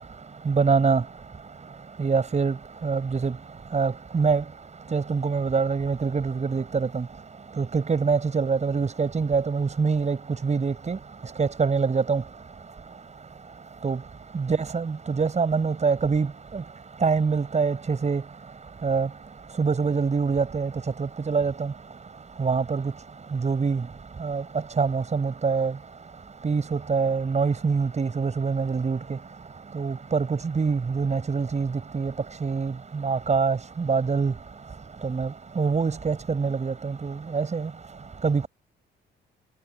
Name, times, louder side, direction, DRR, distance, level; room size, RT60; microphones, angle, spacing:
voice 1, 0.5-1.0 2.0-2.5 2.8-3.3 3.7-4.4 4.9-7.0 7.6-10.2 10.4-11.0 11.4-12.2 13.8-14.0 14.3-16.3 17.0-18.2 18.8-19.1 19.6-20.7 21.3-21.5 22.4-22.8 23.4-23.8 24.2-24.4 24.8-25.7 26.4-26.6 26.9-29.0 29.8-30.3 30.6-31.7 31.9-32.1 32.4-32.7 33.0-33.6 33.9-34.3 35.0-35.3 35.6-37.7 38.2-38.5, right 5 dB, 35° right, 7.3 m, -24 dB
cardioid pair, 90°, 20 cm